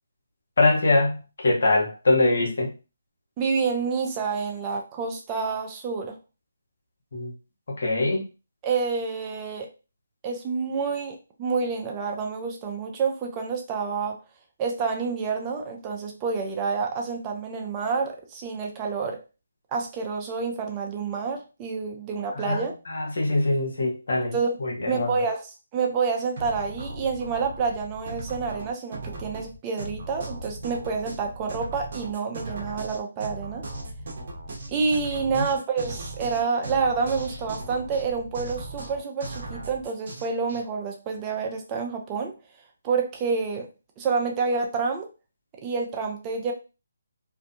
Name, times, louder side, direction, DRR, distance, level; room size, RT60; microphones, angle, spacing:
voice 1, 0.6-2.7 7.1-7.3 7.7-8.3 22.3-25.1 35.3-35.5, left 2 dB, 65° left, 0 dB, 1.1 m, -23 dB
voice 2, 3.4-6.2 8.6-9.7 10.2-14.2 14.6-19.2 19.7-22.7 24.3-24.6 24.9-33.6 34.7-42.3 42.8-43.7 44.0-45.1 45.6-46.5, right 5 dB, 20° right, 2 dB, 0.4 m, -28 dB
sound 1, 26.4-40.6, right 2 dB, 50° right, 0.7 m, -38 dB
2.6 x 2.2 x 2.6 m, 0.30 s
figure-of-eight pair, 150°, 0 cm